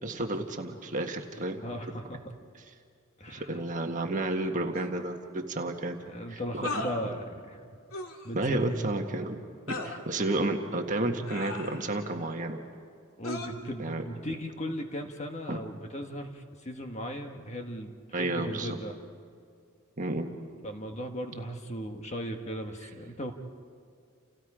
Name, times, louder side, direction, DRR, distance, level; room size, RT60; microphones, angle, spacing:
voice 1, 0.0-1.6 3.3-6.0 6.3-6.8 8.3-9.4 9.7-12.6 13.8-14.0 15.5-15.6 18.1-18.8 20.0-20.5, right 2 dB, 35° right, 4 dB, 1.6 m, -31 dB
voice 2, 1.6-2.3 3.2-3.6 6.0-7.6 7.9-8.6 13.2-17.9 18.2-19.0 20.6-23.3, equal, 30° left, 4 dB, 1.5 m, -37 dB
sound 1, 4.7-4.9 6.6-7.0 7.9-8.3 9.7-10.0 11.3-12.1 13.2-13.5, left 2 dB, 80° left, 2.4 m, -36 dB
30.0 x 30.0 x 5.0 m, 2.3 s
head